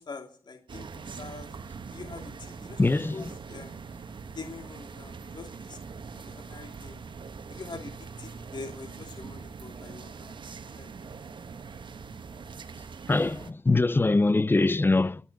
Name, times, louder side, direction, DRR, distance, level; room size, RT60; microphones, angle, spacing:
voice 1, 0.0-1.5 1.9-3.8 4.3-5.8 6.1-7.0 7.5-10.3 10.7-11.4, left 4 dB, 50° left, 2.7 m, -44 dB
sound 1, 0.7-13.5, right 5 dB, 60° right, 1.2 m, -42 dB
voice 2, 2.8-3.2 13.1-15.2, left 3 dB, 25° left, 0.7 m, -23 dB
12.5 x 9.0 x 8.5 m
cardioid pair, 80°, 9 cm